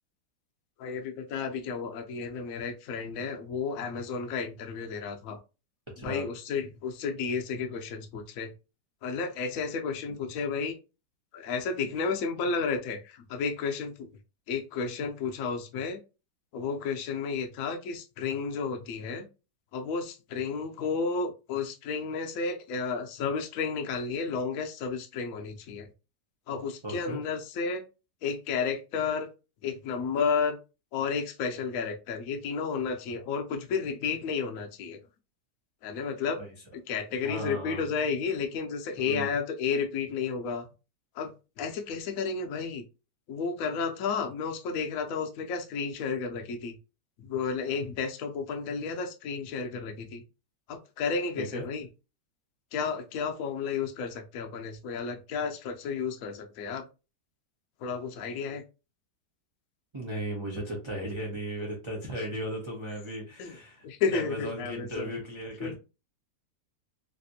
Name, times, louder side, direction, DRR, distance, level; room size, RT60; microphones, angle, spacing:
voice 1, 0.8-5.4 6.0-8.5 9.0-10.8 11.3-14.1 14.5-16.0 16.5-19.3 19.7-25.9 26.5-27.8 28.2-29.3 29.6-30.6 30.9-35.0 35.8-36.4 36.9-40.7 41.1-42.8 43.3-46.8 47.2-50.2 50.7-51.9 52.7-56.9 57.8-58.6 63.4-63.6 63.8-65.1 65.6-65.8, left 5 dB, 65° left, 4 dB, 0.9 m, -32 dB
voice 2, 6.0-6.3 26.8-27.2 36.4-36.5 37.2-37.9 39.0-39.3 51.4-51.6 59.9-65.8, equal, 45° right, -2 dB, 0.3 m, -36 dB
3.3 x 2.5 x 2.7 m, 0.30 s
omnidirectional pair, 1.9 m